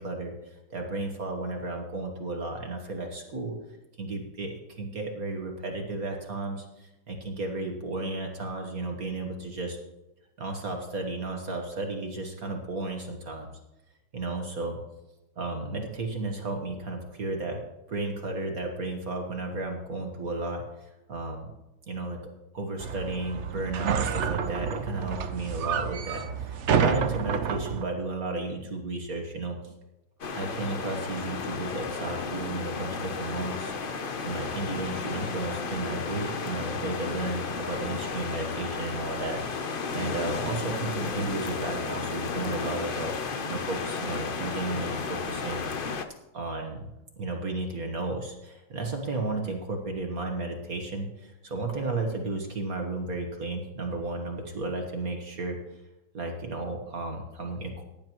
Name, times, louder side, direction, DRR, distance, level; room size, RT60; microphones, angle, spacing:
voice 1, 0.0-3.6 4.0-9.8 10.4-13.5 14.1-14.8 15.4-17.6 17.9-21.5 21.9-22.2 22.5-29.7 30.3-45.6 46.3-55.6 56.1-57.8, right 2 dB, 50° right, 3 dB, 1.7 m, -33 dB
sound 1, 22.8-27.8, right 7 dB, 70° right, 0.6 m, -29 dB
sound 2, 30.2-46.1, left 5 dB, 70° left, 0.5 m, -33 dB
15.5 x 10.5 x 3.0 m, 1.0 s
omnidirectional pair, 2.1 m